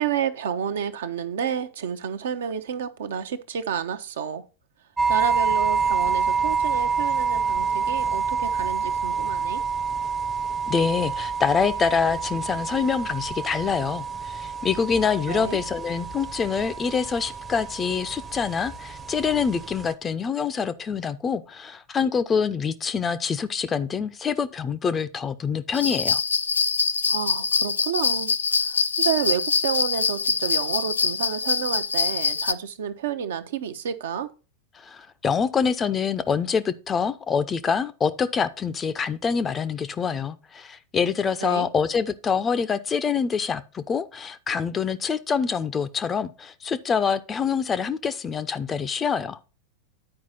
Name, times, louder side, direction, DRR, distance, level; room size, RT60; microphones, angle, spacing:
voice 1, 0.0-4.4 5.1-9.6 15.3-15.6 27.1-34.3 41.4-41.7, right 8 dB, 60° right, 0.7 m, -30 dB
sound 1, 5.0-19.9, right 5 dB, 15° right, 0.7 m, -27 dB
voice 2, 10.7-26.2 34.8-49.4, left 6 dB, 20° left, 0.5 m, -25 dB
sound 2, 25.7-32.5, left 5 dB, 75° left, 0.3 m, -24 dB
9.7 x 4.7 x 4.2 m
figure-of-eight pair, 90°, 0 cm